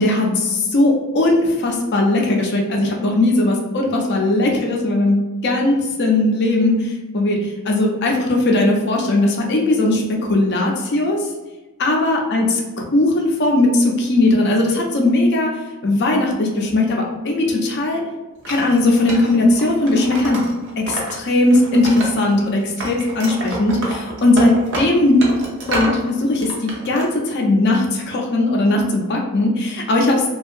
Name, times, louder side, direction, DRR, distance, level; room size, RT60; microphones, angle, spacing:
voice 1, 0.0-11.3 11.8-15.5 15.8-18.0 18.5-20.4 20.8-25.2 25.7-30.3, left 2 dB, 50° left, 0 dB, 0.5 m, -18 dB
Wood, 18.4-21.1 21.4-22.5 22.8-26.0 26.4-27.1, right 1 dB, 55° right, 0.6 m, -28 dB
2.7 x 2.3 x 2.5 m, 1.1 s
head